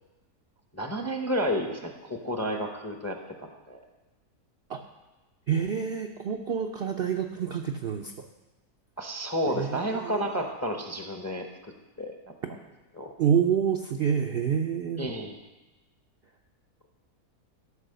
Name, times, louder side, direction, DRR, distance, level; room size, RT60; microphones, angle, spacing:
voice 1, 0.7-3.8 9.0-11.5 12.0-12.2 12.9-13.1 15.0-15.4, equal, 15° left, 3 dB, 0.6 m, -31 dB
voice 2, 5.5-8.1 9.5-10.4 13.2-15.1, right 7 dB, 60° right, 3 dB, 0.6 m, -28 dB
13.0 x 5.5 x 6.6 m, 1.1 s
omnidirectional pair, 1.6 m